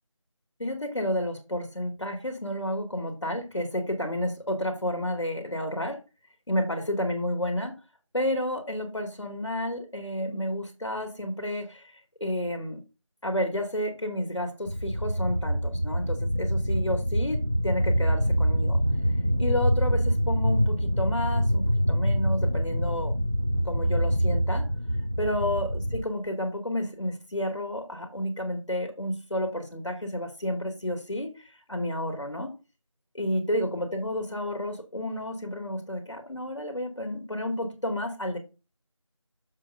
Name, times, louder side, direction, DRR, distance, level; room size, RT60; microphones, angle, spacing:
voice 1, 0.6-6.0 6.5-7.8 8.1-11.9 12.2-12.8 13.2-17.4 17.6-18.8 19.4-23.1 23.5-24.7 25.2-32.5 33.1-38.4, left 1 dB, 65° left, 2.3 m, -31 dB
sound 1, 14.7-26.0, equal, 35° right, 0.5 m, -25 dB
7.2 x 4.0 x 5.3 m
figure-of-eight pair, 175°, 17 cm